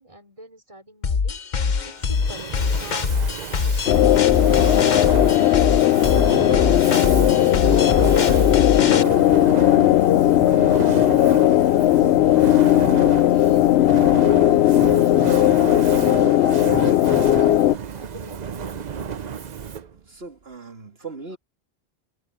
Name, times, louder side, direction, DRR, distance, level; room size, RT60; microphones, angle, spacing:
voice 1, 0.0-1.4 1.8-6.0 6.9-9.5 10.0-16.3 17.4-19.3 21.0-21.4, right 1 dB, 30° right, 5.4 m, -44 dB
sound 1, 1.0-9.0, left 5 dB, 50° left, 1.0 m, -23 dB
Fire, 2.0-20.0, right 7 dB, 50° right, 0.7 m, -32 dB
sound 2, 3.9-17.7, left 13 dB, 90° left, 0.8 m, -17 dB
voice 2, 19.9-21.4, right 4 dB, 75° right, 2.9 m, -39 dB
omnidirectional pair, 1.0 m